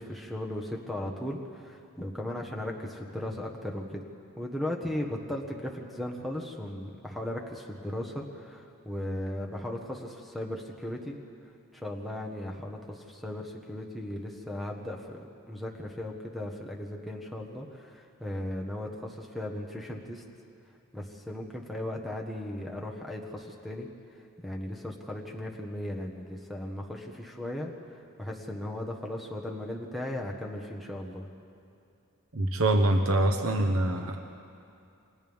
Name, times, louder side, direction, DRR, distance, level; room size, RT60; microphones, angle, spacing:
voice 1, 0.0-4.0 4.4-11.2 11.7-20.2 20.9-23.9 24.1-31.3, left 1 dB, ahead, -2 dB, 1.4 m, -37 dB
voice 2, 32.3-34.2, right 1 dB, 80° right, 4 dB, 1.1 m, -25 dB
29.0 x 25.5 x 3.6 m, 2.5 s
head